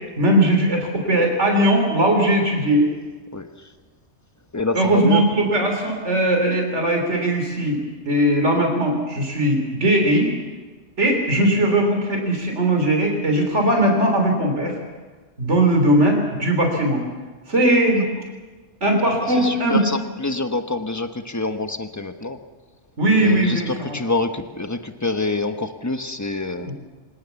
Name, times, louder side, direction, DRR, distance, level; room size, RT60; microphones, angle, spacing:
voice 1, 0.2-2.9 4.7-7.8 8.1-10.3 11.0-14.8 15.4-17.0 17.5-18.0 18.8-19.8 23.0-24.0 26.6-26.7, right 1 dB, 80° right, 2 dB, 4.0 m, -19 dB
voice 2, 4.5-5.2 19.3-22.4 23.2-26.7, left 2 dB, 15° left, 7 dB, 1.1 m, -26 dB
25.5 x 19.0 x 7.1 m, 1.3 s
omnidirectional pair, 1.2 m